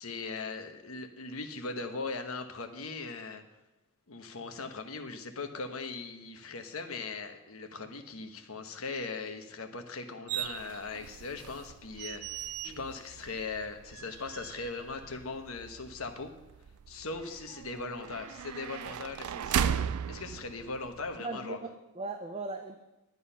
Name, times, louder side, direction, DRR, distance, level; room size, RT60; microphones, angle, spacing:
voice 1, 0.0-3.4 4.1-16.3 16.9-21.6, left 3 dB, 75° left, 7 dB, 1.1 m, -39 dB
sound 1, 10.3-21.2, right 9 dB, 85° right, 0.4 m, -38 dB
voice 2, 21.2-22.8, right 3 dB, 25° right, 5 dB, 0.6 m, -39 dB
11.0 x 9.3 x 5.7 m, 1.0 s
head